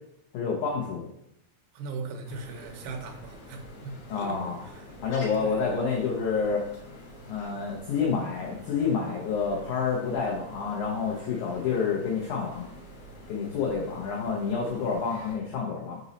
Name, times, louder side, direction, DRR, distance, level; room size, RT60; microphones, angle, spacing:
voice 1, 0.3-1.1 4.1-4.6 5.0-6.7 7.3-12.7 13.3-16.0, left 5 dB, 80° left, -2 dB, 1.7 m, -28 dB
voice 2, 1.7-4.4 4.6-4.9 5.4-5.7, right 4 dB, 75° right, 4 dB, 2.5 m, -39 dB
sound 1, 2.2-15.4, left 1 dB, 55° left, 1.7 m, -47 dB
6.1 x 4.1 x 4.0 m, 0.79 s
omnidirectional pair, 4.6 m